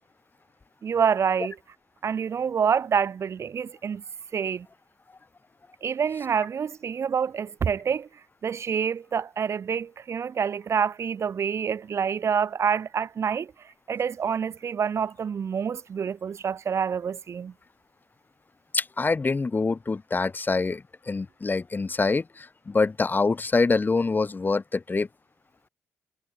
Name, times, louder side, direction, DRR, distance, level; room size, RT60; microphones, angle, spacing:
voice 1, 0.8-1.6 2.0-4.0 4.3-4.7 5.8-8.1 8.4-13.5 13.9-17.5, right 7 dB, 60° right, 3.6 m, -27 dB
voice 2, 18.7-25.1, left 3 dB, 35° left, 3.5 m, -25 dB
supercardioid pair, 55°, 5 cm